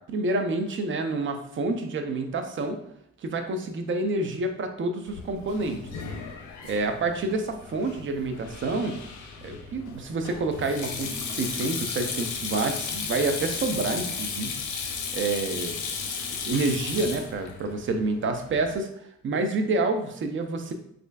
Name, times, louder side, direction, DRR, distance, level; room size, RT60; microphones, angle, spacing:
voice 1, 0.1-2.8 3.2-5.8 6.6-9.0 9.4-14.6 15.1-15.8 16.4-18.9 19.2-20.7, right 3 dB, 40° right, 6 dB, 0.6 m, -28 dB
Sink (filling or washing), 5.1-18.8, left 5 dB, 85° left, 0.6 m, -35 dB
3.7 x 3.3 x 2.3 m, 0.73 s
cardioid pair, 90°, 30 cm